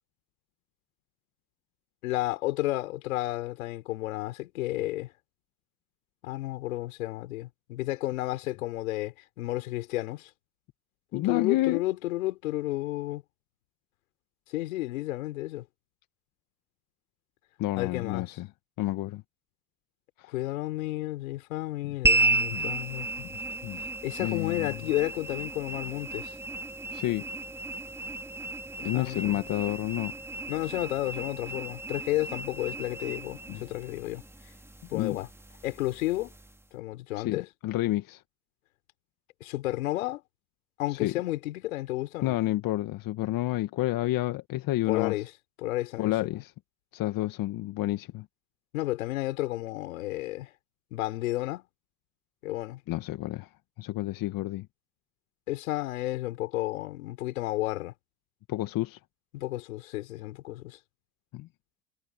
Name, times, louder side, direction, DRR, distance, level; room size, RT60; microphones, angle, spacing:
voice 1, 2.0-5.1 6.2-10.3 11.1-13.2 14.5-15.7 17.8-18.4 20.3-23.3 24.0-26.4 28.9-29.3 30.5-34.2 34.9-35.3 35.6-36.3 36.7-37.5 39.4-40.2 40.8-42.4 44.9-45.3 45.6-46.3 48.7-50.5 50.9-51.6 52.4-52.8 55.5-57.9 59.3-60.8, left 17 dB, 80° left, 5.2 m, -32 dB
voice 2, 11.1-11.8 17.6-18.5 18.8-19.2 20.2-20.3 22.5-22.6 23.6-23.8 24.2-24.8 26.9-27.3 28.8-30.1 33.5-33.6 34.9-35.2 37.2-38.2 40.9-41.1 42.2-45.1 46.0-46.5 46.9-48.3 52.9-53.5 53.8-54.7 58.5-59.0 61.3-61.5, left 16 dB, 55° left, 1.8 m, -29 dB
sound 1, 22.0-36.7, right 2 dB, 5° right, 2.6 m, -33 dB
hypercardioid pair, 75°, 40 cm